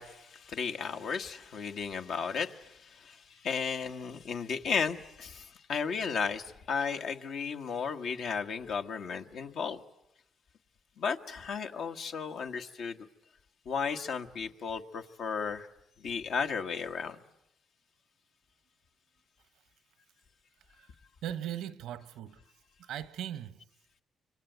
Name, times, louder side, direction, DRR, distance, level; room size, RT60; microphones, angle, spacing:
voice 1, 0.0-9.8 11.0-13.0 13.6-15.7 16.0-17.2, left 6 dB, 70° left, 1.4 m, -34 dB
voice 2, 21.2-22.4 22.8-23.5, right 11 dB, 85° right, 1.0 m, -38 dB
25.5 x 24.5 x 9.3 m
cardioid pair, 90°, 0 cm